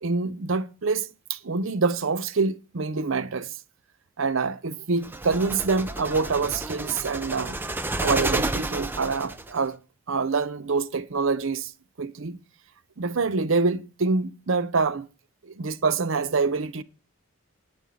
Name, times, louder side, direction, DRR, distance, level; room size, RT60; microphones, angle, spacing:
voice 1, 0.0-3.6 4.2-7.6 8.0-9.8 10.1-11.7 12.0-12.4 13.0-15.0 15.4-16.8, right 4 dB, 60° right, 0.6 m, -26 dB
sound 1, 5.0-9.6, right 2 dB, 10° right, 0.4 m, -30 dB
9.3 x 5.4 x 7.4 m
head